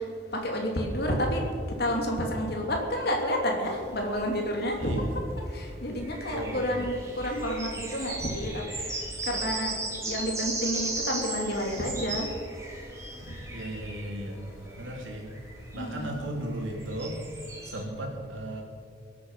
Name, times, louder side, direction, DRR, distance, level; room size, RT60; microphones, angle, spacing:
voice 1, 0.4-1.4 1.8-5.0 5.6-8.6 9.3-9.8 10.0-12.3 15.7-16.2, equal, 55° left, 1 dB, 2.8 m, -29 dB
sound 1, 3.6-17.8, right 2 dB, 15° right, 2.9 m, -37 dB
voice 2, 4.8-5.2 6.3-6.9 13.5-14.5 14.8-15.3 15.7-17.2 17.6-18.6, right 1 dB, 90° right, 0 dB, 3.3 m, -36 dB
23.5 x 8.6 x 5.7 m, 2.2 s
head